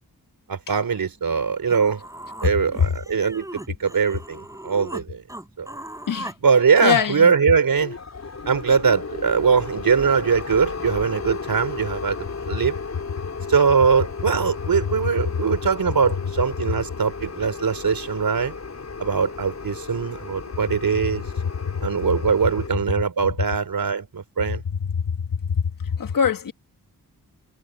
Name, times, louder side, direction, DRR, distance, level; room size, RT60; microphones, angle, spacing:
voice 1, 0.5-2.0 2.4-5.2 5.6-5.7 6.4-8.0 8.5-12.8 13.5-18.5 19.0-21.2 21.8-24.6, right 6 dB, 70° right, 4.0 m, -21 dB
Human voice, 1.7-5.0 5.3-6.4, right 1 dB, 10° right, 6.8 m, -38 dB
voice 2, 6.8-7.3 13.4-13.5 21.6-21.9 24.7-26.5, left 7 dB, 65° left, 1.4 m, -24 dB
sound 1, 7.8-22.8, left 4 dB, 45° left, 4.7 m, -35 dB
wide cardioid pair, 145°, 36 cm